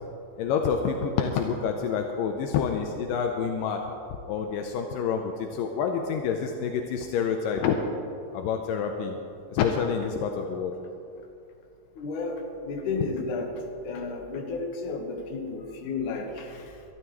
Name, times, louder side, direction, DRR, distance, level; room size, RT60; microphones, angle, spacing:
voice 1, 0.4-3.8 4.3-7.8 8.3-9.2 9.5-10.7, left 7 dB, 85° left, 4 dB, 2.3 m, -27 dB
voice 2, 12.0-16.8, left 3 dB, 65° left, 2 dB, 2.7 m, -33 dB
24.5 x 12.5 x 3.1 m, 2.6 s
omnidirectional pair, 4.0 m